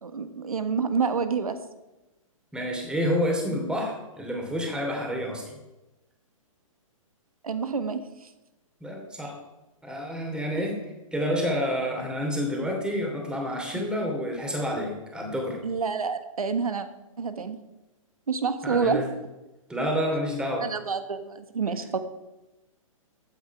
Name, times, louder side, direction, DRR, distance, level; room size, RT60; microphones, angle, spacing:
voice 1, 0.0-1.5 7.4-8.0 13.7-13.8 15.6-16.9 17.2-17.6 18.3-19.0 20.6-22.0, right 5 dB, 90° right, 10 dB, 1.5 m, -28 dB
voice 2, 2.5-5.5 8.8-9.4 9.8-10.8 11.1-15.6 18.6-19.0 19.7-20.7, equal, 5° right, 1 dB, 3.0 m, -29 dB
14.5 x 9.3 x 4.8 m, 1.0 s
hypercardioid pair, 140°, 18 cm